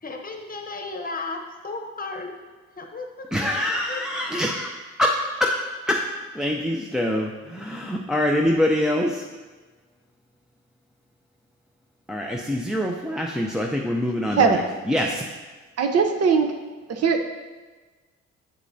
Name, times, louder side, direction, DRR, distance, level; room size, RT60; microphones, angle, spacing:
voice 1, 0.0-2.3 2.8-3.1 3.9-4.0 4.3-4.4, left 3 dB, 30° left, 3 dB, 0.9 m, -34 dB
voice 2, 3.3-4.7 5.0-5.6 5.9-6.0 6.3-9.2 12.1-15.2, left 1 dB, ahead, -1 dB, 0.5 m, -24 dB
voice 3, 15.8-16.5 16.9-17.2, right 5 dB, 55° right, 4 dB, 0.8 m, -20 dB
7.6 x 6.8 x 2.7 m, 1.3 s
cardioid pair, 90°, 30 cm